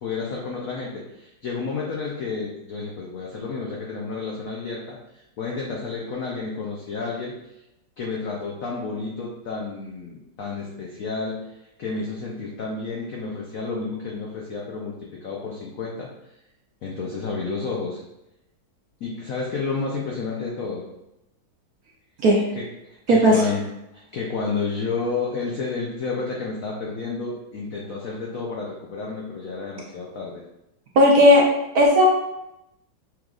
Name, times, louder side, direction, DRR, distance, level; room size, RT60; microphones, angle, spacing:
voice 1, 0.0-7.3 8.0-11.4 11.8-14.9 15.2-16.1 16.8-18.0 19.0-20.9 22.5-23.6 23.9-30.4, left 4 dB, 65° left, -2 dB, 0.8 m, -31 dB
voice 2, 31.0-31.4 31.7-32.1, equal, 65° right, -1 dB, 0.9 m, -14 dB
5.9 x 3.8 x 2.4 m, 0.87 s
omnidirectional pair, 2.2 m